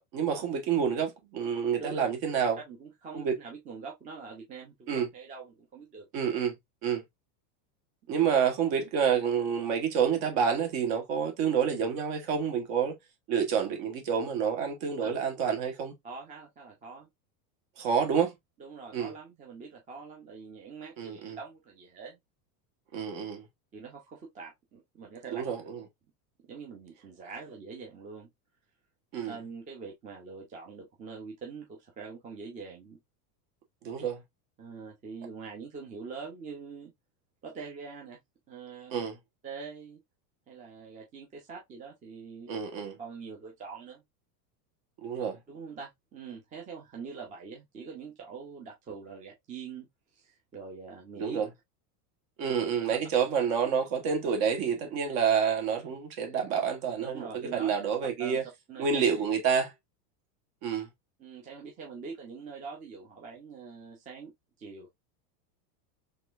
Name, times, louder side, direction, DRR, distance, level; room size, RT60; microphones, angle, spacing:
voice 1, 0.0-2.6 3.1-3.3 4.9-5.1 6.1-6.5 6.8-7.0 8.1-12.9 13.3-15.9 17.8-18.3 18.9-19.1 21.0-21.4 22.9-23.4 25.3-25.8 29.1-29.4 33.8-34.2 38.9-39.2 42.5-43.0 45.0-45.4 51.2-51.5 52.4-57.3 57.5-58.4 58.8-59.7 60.6-60.9, right 7 dB, 45° right, 1.5 m, -28 dB
voice 2, 2.7-6.1 15.0-15.1 16.0-17.1 18.6-22.2 23.7-25.4 26.5-28.3 29.3-33.0 34.6-36.9 37.4-38.2 38.5-38.9 39.4-40.0 40.5-42.5 43.0-44.0 45.5-49.9 50.1-51.4 57.0-57.8 58.2-59.0 61.2-64.3 64.6-64.9, right 5 dB, 15° right, 0.8 m, -44 dB
4.2 x 3.4 x 2.5 m
supercardioid pair, 165°, 48 cm